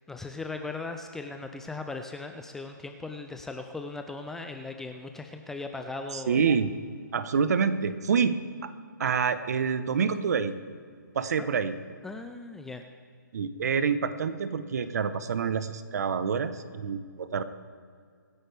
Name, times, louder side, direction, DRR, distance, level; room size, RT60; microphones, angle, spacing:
voice 1, 0.1-6.4 11.4-11.5 12.0-12.8, left 3 dB, 5° left, 5 dB, 0.4 m, -38 dB
voice 2, 6.1-6.7 7.1-8.7 9.0-10.6 11.1-11.8 13.3-17.4, right 6 dB, 55° right, 12 dB, 1.0 m, -27 dB
25.0 x 10.5 x 3.4 m, 2.1 s
hypercardioid pair, 155°, 11 cm